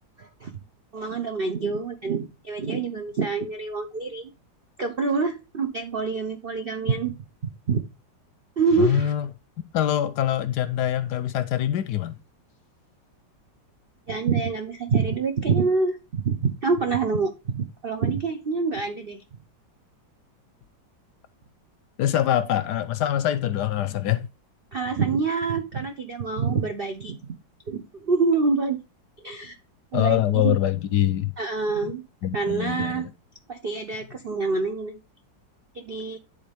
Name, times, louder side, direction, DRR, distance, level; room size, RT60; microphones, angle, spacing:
voice 1, 0.2-0.5 0.9-4.3 4.8-7.2 7.7-7.8 8.6-9.1 14.1-19.2 24.7-27.2 27.7-28.8 29.2-29.5 29.9-30.6 31.4-32.0 32.3-33.1 33.5-35.0 35.7-36.2, right 4 dB, 60° right, 0.5 m, -26 dB
voice 2, 8.8-9.3 9.7-12.2 22.0-24.3 29.9-31.3 32.2-33.1, left 12 dB, 75° left, 1.1 m, -24 dB
10.5 x 4.0 x 3.4 m
omnidirectional pair, 2.0 m